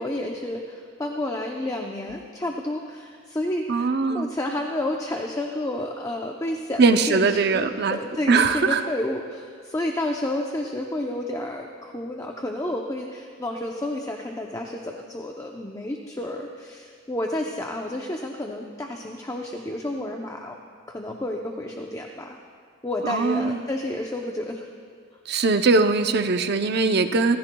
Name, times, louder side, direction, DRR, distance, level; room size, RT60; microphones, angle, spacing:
voice 1, 0.0-20.6 20.9-22.4 22.8-24.7, left 1 dB, 15° left, 1 dB, 0.7 m, -30 dB
voice 2, 3.7-4.3 6.8-8.0 8.3-8.8 23.0-23.6 25.3-27.4, right 4 dB, 60° right, 8 dB, 0.6 m, -21 dB
28.0 x 15.0 x 2.3 m, 2.1 s
head